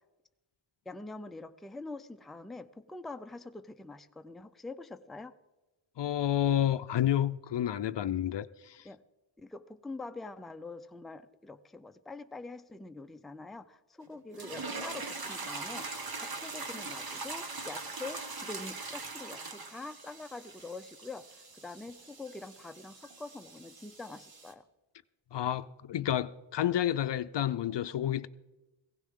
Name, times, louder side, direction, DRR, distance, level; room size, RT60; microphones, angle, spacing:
voice 1, 0.9-5.3 8.8-9.0 9.4-15.9 16.2-24.6, left 3 dB, ahead, 0.5 m, -45 dB
voice 2, 6.0-8.8 25.3-28.3, left 11 dB, 60° left, 0.6 m, -30 dB
sound 1, 14.3-24.5, right 3 dB, 45° right, 1.6 m, -42 dB
19.0 x 16.5 x 3.7 m
wide cardioid pair, 105°, 50 cm